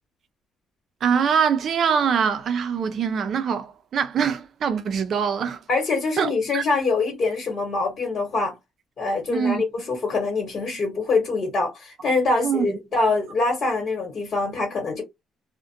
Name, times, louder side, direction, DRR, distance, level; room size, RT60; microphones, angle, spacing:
voice 1, 1.0-3.6 3.9-5.6 6.2-6.6 9.3-9.6 12.4-12.7, right 7 dB, 55° right, 0.4 m, -23 dB
voice 2, 5.7-8.5 9.0-15.0, left 3 dB, 45° left, 1.2 m, -24 dB
2.5 x 2.1 x 2.7 m
cardioid pair, 115°, 0 cm